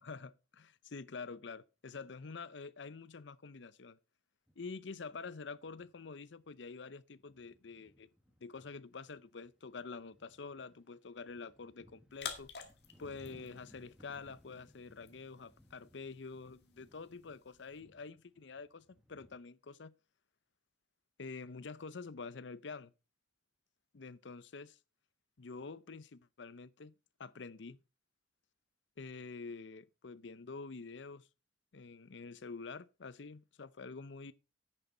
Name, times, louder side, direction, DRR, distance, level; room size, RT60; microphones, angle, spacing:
voice 1, 0.0-4.0 4.6-8.1 8.4-12.5 13.0-19.9 21.2-22.9 23.9-24.8 25.4-26.9 27.2-27.8 29.0-31.3 31.7-34.3, left 4 dB, 75° left, 0.6 m, -47 dB
sound 1, 4.5-4.8 5.1-5.3 5.7-6.1 6.4-6.6 7.1-19.4, equal, 5° right, 1.4 m, -64 dB
sound 2, 12.1-17.8, left 6 dB, 60° left, 2.0 m, -51 dB
10.5 x 9.0 x 3.9 m
head